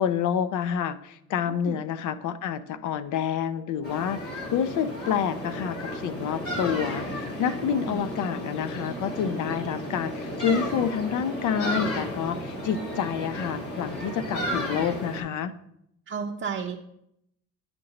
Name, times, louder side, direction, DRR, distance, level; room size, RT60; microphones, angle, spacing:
voice 1, 0.0-15.5, left 8 dB, 80° left, 13 dB, 0.6 m, -28 dB
sound 1, 3.8-15.2, equal, 50° left, 2.1 m, -33 dB
voice 2, 16.1-16.8, right 6 dB, 40° right, 0 dB, 0.7 m, -32 dB
9.5 x 5.1 x 2.9 m, 0.76 s
cardioid pair, 90°, 30 cm